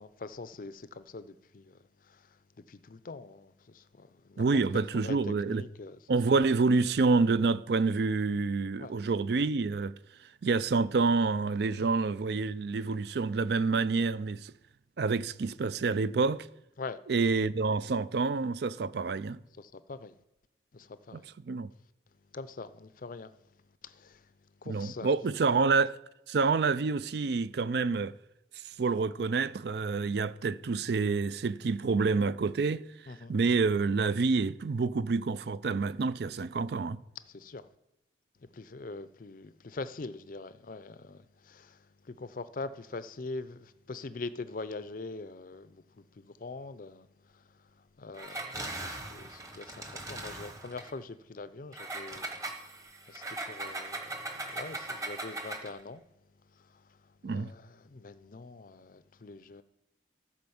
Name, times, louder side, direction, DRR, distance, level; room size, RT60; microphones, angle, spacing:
voice 1, 0.0-2.4 2.7-4.4 4.7-6.0 8.8-9.0 11.8-11.9 16.8-17.0 19.6-20.1 20.7-21.3 22.3-23.3 23.8-24.3 24.6-25.1 25.6-25.7 33.1-33.3 37.3-37.7 38.4-47.1 47.3-52.4 53.1-56.0 56.5-57.0 57.3-59.6, left 3 dB, 45° left, 0.5 m, -43 dB
voice 2, 4.4-5.7 6.1-9.9 10.4-14.5 15.0-16.5 17.1-19.4 21.1-21.2 21.5-21.7 24.7-26.0 26.3-28.1 28.8-32.8 33.3-37.0 57.2-57.5, right 4 dB, 60° right, 0.4 m, -28 dB
Engine, 48.1-50.9 51.7-55.8, right 2 dB, 20° right, 1.1 m, -39 dB
14.0 x 5.0 x 7.0 m
head